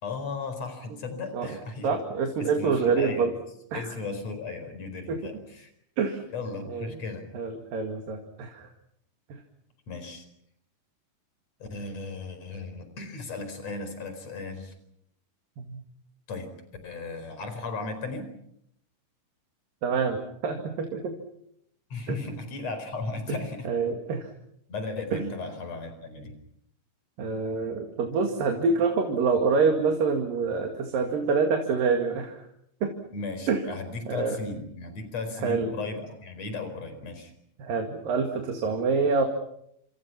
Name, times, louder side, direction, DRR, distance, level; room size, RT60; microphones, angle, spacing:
voice 1, 0.0-2.0 2.4-3.3 3.7-5.7 6.3-7.2 9.9-10.2 11.6-14.7 16.3-16.5 16.8-18.3 21.9-23.7 24.7-26.4 33.1-37.3, left 3 dB, 50° left, 9 dB, 5.7 m, -36 dB
voice 2, 1.8-3.3 3.7-3.8 5.1-5.2 6.0-6.2 6.7-7.0 7.3-8.7 9.3-9.4 15.6-15.8 19.8-21.1 22.1-22.2 23.7-24.3 25.1-25.2 27.2-32.4 32.8-32.9 33.5-33.6 34.1-34.4 35.4-35.7 37.6-39.2, right 4 dB, 85° right, 3 dB, 3.9 m, -26 dB
28.5 x 27.0 x 6.0 m, 0.74 s
omnidirectional pair, 3.9 m